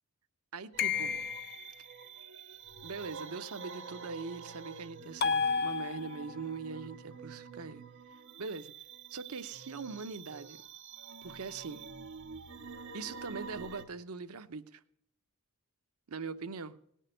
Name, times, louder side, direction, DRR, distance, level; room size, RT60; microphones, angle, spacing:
voice 1, 0.5-1.1 2.8-7.8 8.4-8.7 9.1-10.6 11.2-11.8 12.9-14.8 16.1-16.8, right 4 dB, 75° right, 11 dB, 0.8 m, -41 dB
sound 1, 0.7-13.9, right 5 dB, 55° right, 1.2 m, -48 dB
sound 2, 0.8-1.7 5.2-6.4, left 5 dB, 45° left, 0.9 m, -31 dB
18.0 x 6.5 x 8.9 m, 0.71 s
head